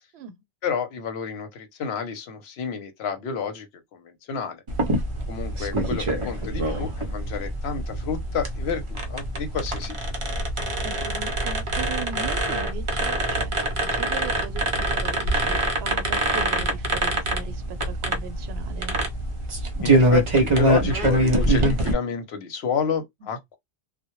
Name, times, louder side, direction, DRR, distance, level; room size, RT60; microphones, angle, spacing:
voice 1, 0.6-3.7 3.9-4.6 5.3-10.1 19.8-23.6, left 6 dB, 85° left, 0.9 m, -30 dB
sound 1, 4.7-21.9, right 1 dB, 40° right, 0.5 m, -24 dB
voice 2, 10.8-19.0 23.2-23.3, right 6 dB, 85° right, 0.8 m, -38 dB
2.1 x 2.0 x 2.9 m
omnidirectional pair, 1.0 m